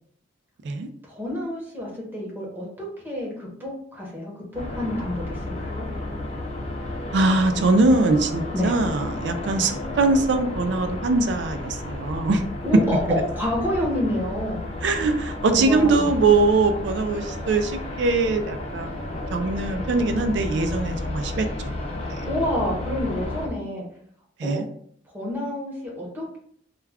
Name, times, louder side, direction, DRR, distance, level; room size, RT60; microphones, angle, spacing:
voice 1, 1.0-5.8 8.5-8.8 9.5-9.7 12.6-14.6 15.1-15.2 15.5-16.1 22.2-23.8 24.4-24.6 25.1-26.4, left 1 dB, 10° right, -3 dB, 0.8 m, -28 dB
sound 1, 4.5-23.5, left 1 dB, 30° left, 0.5 m, -32 dB
voice 2, 7.1-12.4 14.8-22.2 24.4-24.6, right 3 dB, 60° right, 6 dB, 0.3 m, -22 dB
2.3 x 2.2 x 3.3 m, 0.63 s
head